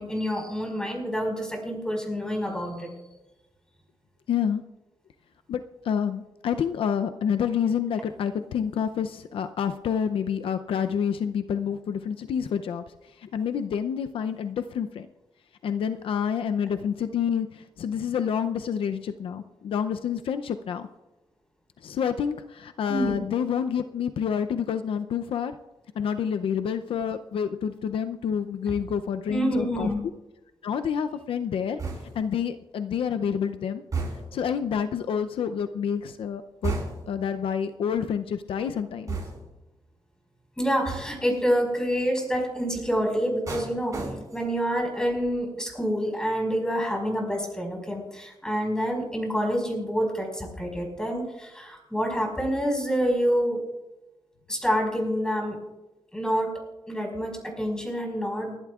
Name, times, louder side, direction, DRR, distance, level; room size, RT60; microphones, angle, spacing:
voice 1, 0.0-2.9 22.9-23.3 29.3-30.0 40.6-53.6 54.5-55.6 56.1-56.5 56.9-58.6, equal, 10° left, 1 dB, 4.9 m, -27 dB
voice 2, 4.3-4.6 5.5-12.8 13.2-15.1 15.6-20.9 21.8-25.6 26.0-29.9 30.6-31.8 32.1-33.8 34.3-36.7 37.1-39.2, left 7 dB, 75° left, 9 dB, 0.5 m, -28 dB
sound 1, 31.8-32.4 33.9-34.5 36.6-37.2 39.1-39.6 40.9-41.3 43.5-44.6 45.0-45.3, right 4 dB, 35° right, 4.9 m, -33 dB
30.0 x 12.0 x 2.4 m, 0.99 s
wide cardioid pair, 120°, 9 cm